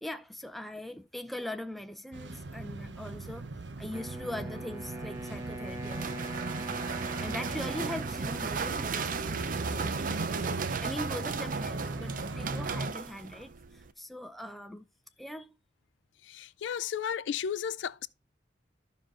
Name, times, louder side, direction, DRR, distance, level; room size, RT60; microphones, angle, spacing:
voice 1, 0.0-3.5 3.8-6.5 7.2-14.8 15.2-15.5, left 1 dB, ahead, 0.5 m, -41 dB
sound 1, 2.1-12.9, right 2 dB, 80° right, 0.8 m, -38 dB
Wind instrument woodwind instrument, 3.9-9.9, right 1 dB, 15° right, 0.9 m, -42 dB
sound 2, 5.2-13.9, right 6 dB, 50° right, 0.5 m, -37 dB
voice 2, 16.3-18.1, left 8 dB, 80° left, 0.4 m, -34 dB
14.5 x 5.4 x 2.5 m
head